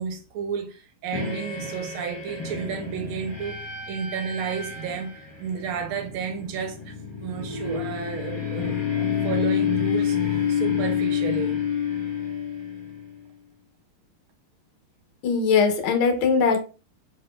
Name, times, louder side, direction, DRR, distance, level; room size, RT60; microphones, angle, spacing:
voice 1, 0.0-11.6, right 6 dB, 75° right, 1.5 m, -32 dB
sound 1, 1.1-13.2, left 8 dB, 35° left, 0.4 m, -28 dB
voice 2, 15.2-16.6, left 5 dB, 70° left, 1.5 m, -20 dB
4.0 x 3.8 x 2.2 m
omnidirectional pair, 2.4 m